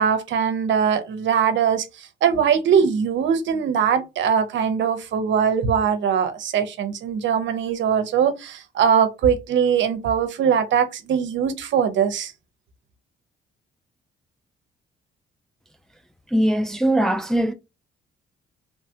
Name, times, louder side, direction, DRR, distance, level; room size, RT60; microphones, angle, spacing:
voice 1, 0.0-12.3, right 7 dB, 70° right, 0.7 m, -21 dB
voice 2, 16.3-17.5, right 1 dB, ahead, 0.4 m, -20 dB
3.1 x 2.1 x 2.7 m
cardioid pair, 90°, 20 cm